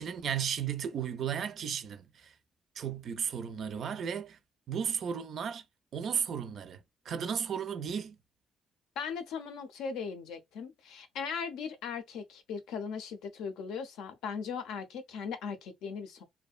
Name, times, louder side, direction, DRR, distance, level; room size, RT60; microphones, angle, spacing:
voice 1, 0.0-2.3 2.8-4.4 4.7-5.6 5.9-8.2, right 8 dB, 60° right, 0.4 m, -34 dB
voice 2, 9.0-16.2, left 6 dB, 90° left, 0.5 m, -38 dB
2.6 x 2.2 x 2.3 m
cardioid pair, 90°, 0 cm